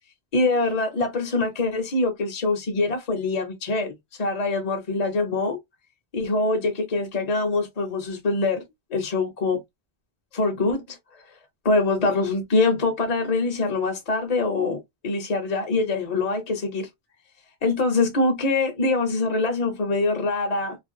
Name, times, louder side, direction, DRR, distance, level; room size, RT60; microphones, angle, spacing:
voice 1, 0.3-5.6 6.1-8.6 8.9-9.6 10.3-11.0 11.6-16.9 17.6-20.8, left 3 dB, 45° left, 0.6 m, -24 dB
2.4 x 2.1 x 2.5 m
omnidirectional pair, 1.1 m